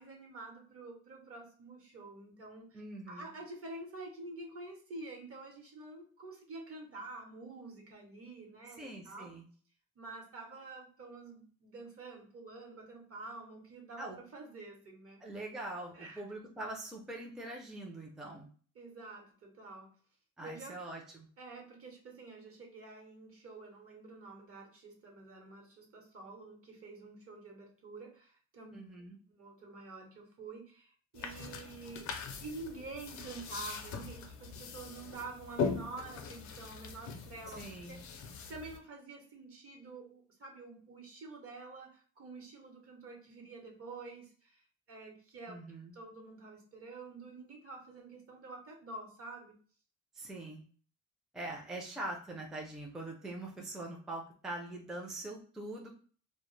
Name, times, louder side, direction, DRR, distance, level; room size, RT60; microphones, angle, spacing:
voice 1, 0.0-2.8 3.1-9.3 10.0-15.2 15.9-16.2 18.7-19.9 20.4-20.8 21.4-28.8 29.3-32.1 32.4-37.6 37.9-44.6 44.9-45.6 45.9-49.5, right 3 dB, 50° right, 0 dB, 0.9 m, -48 dB
voice 2, 2.7-3.3 8.8-9.4 14.0-14.2 15.2-18.5 20.4-21.3 28.7-29.2 37.5-38.0 45.5-45.9 50.1-50.6 51.3-55.9, right 2 dB, ahead, 0 dB, 0.4 m, -43 dB
sound 1, 31.2-38.8, left 5 dB, 65° left, 0.5 m, -41 dB
2.1 x 2.0 x 3.0 m, 0.43 s
cardioid pair, 90°, 30 cm